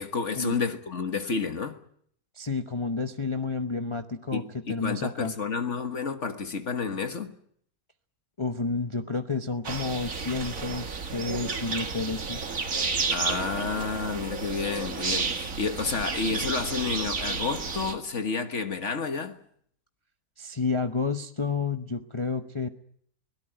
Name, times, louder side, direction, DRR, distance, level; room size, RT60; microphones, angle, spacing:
voice 1, 0.0-1.8 4.3-7.3 13.1-19.4, left 5 dB, 50° left, 1.6 m, -30 dB
voice 2, 2.3-5.3 8.4-12.4 20.4-22.7, left 4 dB, 25° left, 0.8 m, -30 dB
sound 1, 9.6-17.9, right 4 dB, 55° right, 2.1 m, -31 dB
23.5 x 18.0 x 8.9 m
omnidirectional pair, 1.6 m